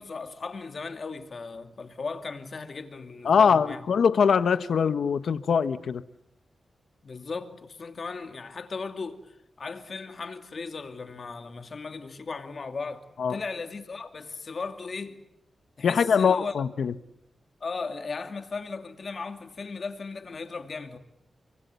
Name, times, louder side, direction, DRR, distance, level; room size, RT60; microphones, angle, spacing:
voice 1, 0.0-3.8 7.0-15.2 15.8-16.5 17.6-21.0, left 4 dB, 45° left, 2.5 m, -37 dB
voice 2, 3.2-6.0 13.2-13.4 15.8-16.9, left 6 dB, 75° left, 1.2 m, -22 dB
28.0 x 25.0 x 8.3 m
wide cardioid pair, 165°, 0 cm